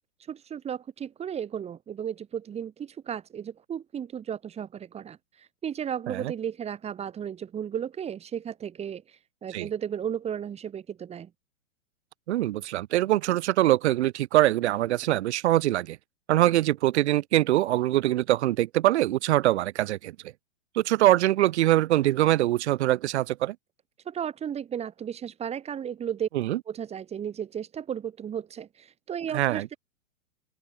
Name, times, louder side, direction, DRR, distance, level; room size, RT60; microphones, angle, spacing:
voice 1, 0.3-11.3 24.0-26.3 26.7-29.7, right 8 dB, 15° right, 2.7 m, -34 dB
voice 2, 12.3-16.0 16.3-20.1 20.7-23.5 26.3-26.6 29.3-29.8, right 15 dB, 55° right, 6.5 m, -23 dB
open air
hypercardioid pair, 145°, 39 cm